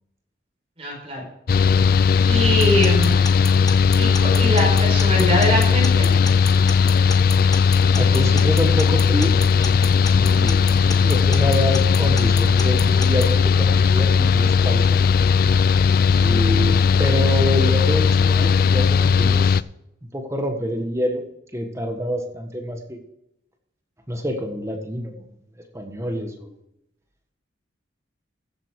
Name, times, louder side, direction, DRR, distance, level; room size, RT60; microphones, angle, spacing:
voice 1, 0.8-1.3 2.2-3.3 4.0-6.1 10.1-10.4, equal, 30° right, 0 dB, 5.0 m, -23 dB
Mechanical fan, 1.5-19.6, left 6 dB, 45° left, 0.3 m, -17 dB
Alarm / Clock, 2.6-13.3, left 4 dB, 20° left, 1.1 m, -32 dB
voice 2, 8.0-9.3 10.3-15.0 16.2-19.6 20.1-21.2 21.5-23.0 24.1-25.2 25.7-26.6, equal, 15° right, 4 dB, 1.5 m, -27 dB
15.0 x 8.0 x 4.8 m, 0.82 s
head